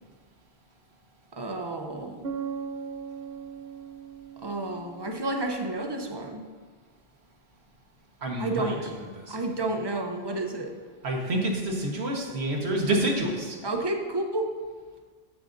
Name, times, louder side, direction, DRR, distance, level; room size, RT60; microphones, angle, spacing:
voice 1, 1.3-2.2 4.4-6.4 8.4-8.9 9.3-10.7 13.6-14.6, right 2 dB, 30° right, 4 dB, 0.6 m, -31 dB
Bass guitar, 2.2-5.9, right 6 dB, 75° right, 0.9 m, -39 dB
voice 2, 8.2-8.7 9.2-9.3 11.0-13.6, right 1 dB, 90° right, 0 dB, 1.5 m, -28 dB
9.6 x 8.1 x 2.6 m, 1.5 s
omnidirectional pair, 1.1 m